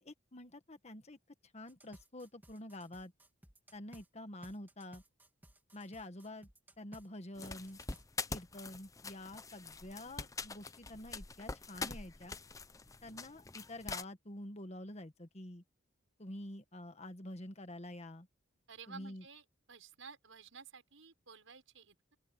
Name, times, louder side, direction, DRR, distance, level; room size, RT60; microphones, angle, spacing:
voice 1, 0.0-1.2 1.5-3.1 3.7-5.0 5.7-6.5 6.8-7.8 8.3-12.4 13.0-15.6 16.2-18.3 18.9-19.2, left 1 dB, 35° left, 1.6 m, -48 dB
sound 1, 1.7-4.1 4.4-7.1 7.4-8.0, right 1 dB, 10° right, 3.1 m, -58 dB
sound 2, 7.3-14.0, left 4 dB, 15° left, 0.7 m, -44 dB
voice 2, 18.7-22.2, right 5 dB, 85° right, 6.3 m, -54 dB
open air
head